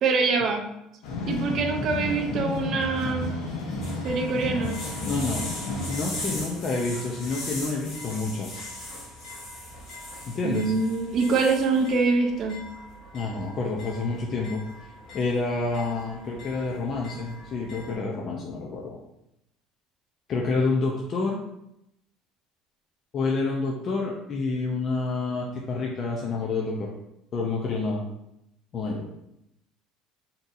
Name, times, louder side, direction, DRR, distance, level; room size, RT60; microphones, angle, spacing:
voice 1, 0.0-0.6 1.3-3.3 4.0-4.8 10.4-12.6, right 4 dB, 40° right, 3 dB, 0.5 m, -24 dB
sound 1, 1.0-6.4, left 2 dB, 90° left, 0.8 m, -32 dB
sound 2, 3.8-17.9, left 1 dB, 50° left, 1.4 m, -40 dB
voice 2, 5.0-5.5 5.9-8.6 10.3-10.7 13.1-14.6 15.1-19.0 20.3-21.4 23.1-26.9 27.3-28.0 28.7-29.0, left 3 dB, 35° left, -2 dB, 0.4 m, -28 dB
3.8 x 2.7 x 2.5 m, 0.83 s
cardioid pair, 165°, 0 cm